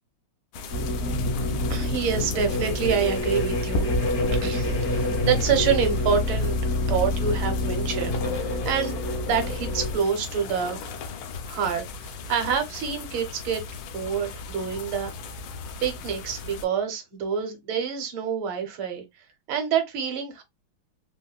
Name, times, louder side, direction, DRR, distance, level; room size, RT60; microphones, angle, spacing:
sound 1, 0.5-16.7, left 3 dB, 80° left, 1.4 m, -36 dB
sound 2, 0.7-10.0, left 1 dB, 60° left, 0.8 m, -27 dB
voice 1, 1.7-3.9 4.4-6.6 6.9-9.0 9.3-10.9 11.5-11.8 12.3-13.6 13.9-15.1 15.8-19.0 19.5-20.4, right 7 dB, 75° right, 1.5 m, -27 dB
3.7 x 2.1 x 2.2 m
omnidirectional pair, 2.3 m